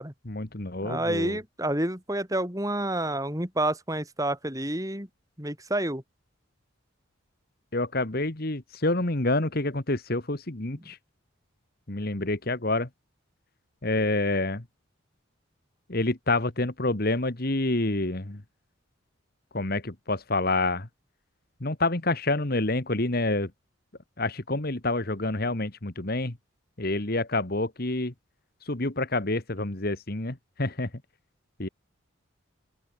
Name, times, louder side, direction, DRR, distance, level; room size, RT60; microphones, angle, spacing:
voice 1, 0.2-1.4 7.7-11.0 11.9-12.9 13.8-14.6 15.9-18.4 19.5-20.9 21.6-23.5 24.2-26.4 26.8-28.1 28.6-30.9 31.6-31.7, left 2 dB, 45° left, 1.7 m, -28 dB
voice 2, 0.8-5.1 5.4-6.0, right 1 dB, 15° right, 4.4 m, -29 dB
open air
head